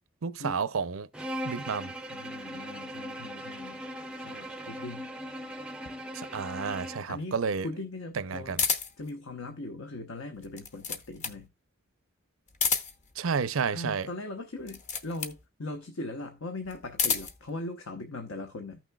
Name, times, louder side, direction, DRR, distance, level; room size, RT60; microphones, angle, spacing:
voice 1, 0.2-1.1 1.4-1.9 6.1-7.7 8.2-8.6 13.2-14.1, right 5 dB, 70° right, 0.5 m, -31 dB
Bowed string instrument, 1.1-7.2, equal, 5° right, 0.5 m, -39 dB
voice 2, 2.1-3.8 4.1-5.1 6.8-7.4 7.6-8.6 9.0-11.5 13.7-18.8, left 2 dB, 75° left, 1.1 m, -40 dB
sound 1, 8.5-9.1 10.4-11.4 12.5-13.1 14.6-15.4 16.7-17.4, left 6 dB, 35° left, 0.9 m, -30 dB
14.5 x 6.1 x 2.3 m
head